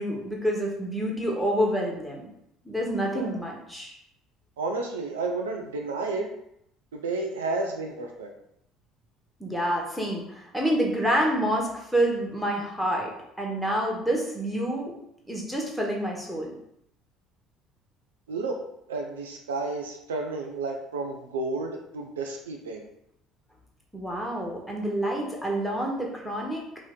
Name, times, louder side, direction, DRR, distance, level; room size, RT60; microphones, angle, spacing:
voice 1, 0.0-2.2 2.6-4.0 9.4-13.1 13.4-14.9 15.3-16.5 23.9-26.6, right 1 dB, ahead, -2 dB, 1.2 m, -28 dB
voice 2, 4.6-6.3 6.9-8.3 18.3-18.6 18.9-22.9, right 3 dB, 80° right, 2 dB, 0.4 m, -31 dB
3.1 x 2.8 x 3.6 m, 0.76 s
hypercardioid pair, 60°, 0 cm